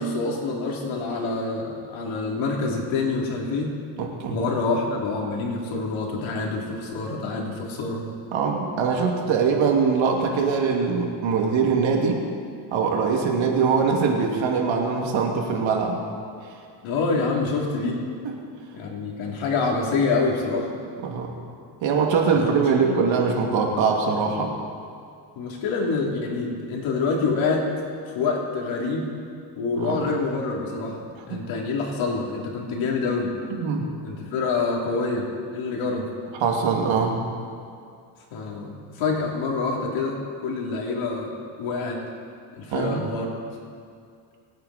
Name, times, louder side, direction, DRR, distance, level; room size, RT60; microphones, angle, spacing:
voice 1, 0.0-3.8 4.3-8.0 16.8-18.0 18.7-20.7 22.3-23.1 25.4-27.7 28.1-29.1 29.6-33.4 34.0-36.1 38.3-41.3 41.6-42.0 42.5-43.3, left 3 dB, 75° left, -1 dB, 3.2 m, -26 dB
voice 2, 4.0-4.4 8.3-12.2 12.7-16.0 21.0-21.3 21.8-24.5 29.8-30.0 31.3-31.4 33.5-33.9 36.4-37.2 42.7-43.0, right 5 dB, 70° right, 1 dB, 2.5 m, -22 dB
25.0 x 9.2 x 4.2 m, 2.3 s
cardioid pair, 100°, 48 cm